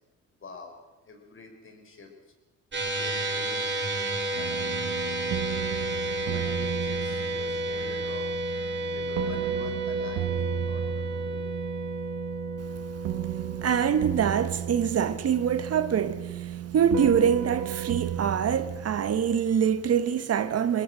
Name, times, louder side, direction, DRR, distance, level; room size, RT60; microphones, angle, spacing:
voice 1, 0.4-0.8 1.0-2.3 2.9-3.7 4.4-4.7 6.3-8.3 8.8-10.3 10.6-11.5, left 4 dB, 40° left, 5.1 m, -46 dB
sound 1, 2.7-15.2, right 1 dB, 40° right, 4.3 m, -32 dB
sound 2, 4.3-19.8, right 11 dB, 85° right, 1.2 m, -34 dB
voice 2, 13.6-20.8, right 8 dB, 55° right, 1.2 m, -25 dB
22.5 x 20.0 x 6.2 m
cardioid pair, 90°, 30 cm